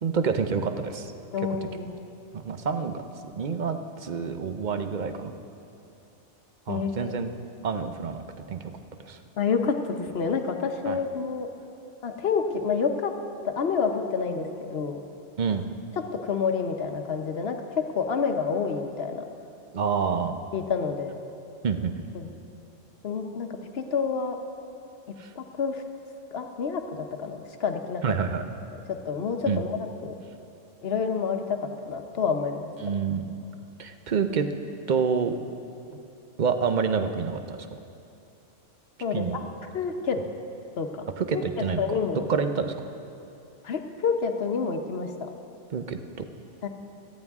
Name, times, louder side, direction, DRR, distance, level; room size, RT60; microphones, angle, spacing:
voice 1, 0.0-1.1 2.3-3.0 3.4-5.3 6.7-7.3 7.6-8.6 9.0-9.2 10.8-11.0 15.4-15.7 19.7-20.3 21.6-21.9 25.2-25.3 28.0-28.4 29.5-29.6 32.8-33.3 33.8-34.5 34.9-35.3 36.4-37.6 39.1-39.4 41.2-41.8 42.1-42.7 45.7-46.0, right 6 dB, 45° right, 8 dB, 0.7 m, -27 dB
voice 2, 1.3-1.9 6.7-7.2 9.4-11.5 12.0-13.1 13.4-15.0 16.2-19.3 20.5-21.2 22.1-22.3 23.0-24.4 25.4-25.8 26.3-28.0 28.9-30.1 30.8-32.7 39.0-39.4 39.7-40.2 40.8-41.1 41.3-41.4 41.8-42.3 43.6-45.3 46.6-46.7, left 5 dB, 55° left, 5 dB, 1.1 m, -28 dB
18.0 x 13.0 x 3.6 m, 2.7 s
omnidirectional pair, 1.3 m